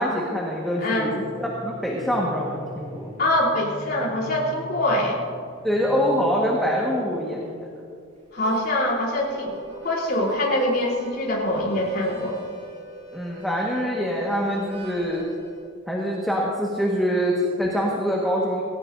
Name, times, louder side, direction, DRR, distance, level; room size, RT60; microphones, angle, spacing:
voice 1, 0.0-3.1 5.6-7.7 13.1-15.2 15.9-18.6, equal, ahead, -4 dB, 1.6 m, -25 dB
voice 2, 0.8-1.1 3.2-5.2 8.3-12.4, left 1 dB, 50° left, -4 dB, 3.6 m, -24 dB
sound 1, 0.9-7.5, equal, 35° left, 3.4 m, -42 dB
Harmonica, 8.2-15.6, right 1 dB, 35° right, 4.2 m, -42 dB
20.0 x 17.5 x 2.7 m, 2.3 s
head